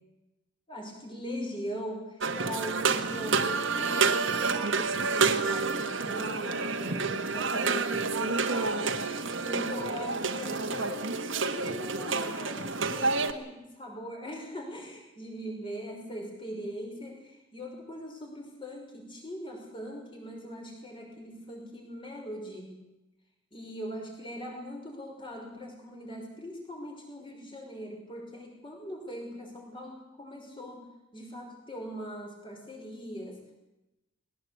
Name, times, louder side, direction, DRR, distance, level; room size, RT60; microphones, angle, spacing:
voice 1, 0.7-22.8 23.5-33.4, equal, 25° left, 1 dB, 5.7 m, -41 dB
sound 1, 2.2-13.3, right 4 dB, 55° right, 1.6 m, -29 dB
20.5 x 18.5 x 8.6 m, 0.98 s
head